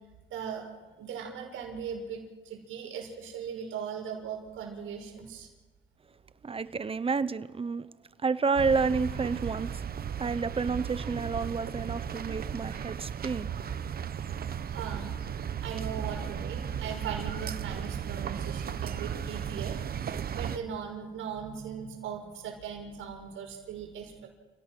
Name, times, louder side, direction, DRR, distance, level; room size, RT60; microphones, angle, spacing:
voice 1, 0.3-0.7 1.0-5.5 14.7-15.2 15.6-24.3, right 7 dB, 85° right, 6.0 m, -39 dB
voice 2, 6.4-7.9 8.2-9.8 10.2-13.5, right 4 dB, 30° right, 0.9 m, -30 dB
sound 1, 8.6-20.6, right 8 dB, 50° right, 1.1 m, -35 dB
29.0 x 17.0 x 6.2 m
cardioid pair, 90°, 20 cm